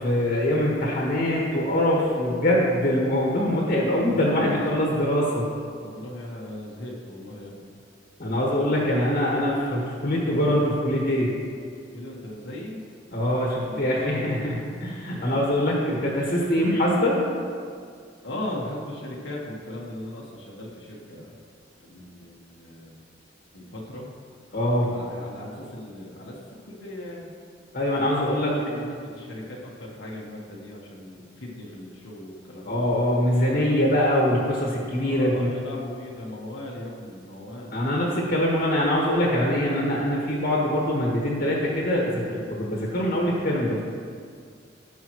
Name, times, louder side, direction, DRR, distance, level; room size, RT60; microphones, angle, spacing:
voice 1, 0.0-5.4 8.2-11.3 13.1-17.2 24.5-24.9 27.7-28.5 32.6-35.5 37.7-43.8, left 1 dB, 55° left, -3 dB, 1.6 m, -23 dB
voice 2, 4.1-4.5 4.7-4.8 5.8-7.7 11.9-12.8 13.7-14.5 18.2-21.4 21.8-23.0 23.5-24.1 24.8-26.3 26.7-27.3 27.9-32.8 35.0-37.8, left 1 dB, 80° left, -3 dB, 1.5 m, -38 dB
16.0 x 5.7 x 3.1 m, 2.2 s
head